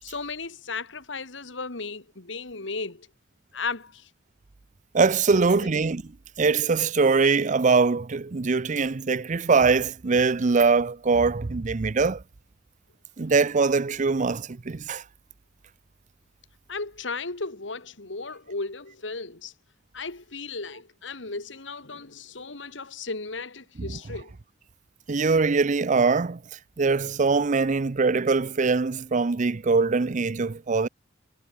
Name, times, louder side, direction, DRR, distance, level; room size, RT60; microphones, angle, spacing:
voice 1, 0.0-3.1 3.5-4.1 5.3-5.4 16.7-19.5 19.9-24.3, left 4 dB, 80° left, 2.3 m, -35 dB
voice 2, 4.9-6.0 6.4-12.2 13.2-15.0 23.8-23.9 25.1-26.4 26.8-30.9, right 4 dB, 40° right, 0.6 m, -22 dB
head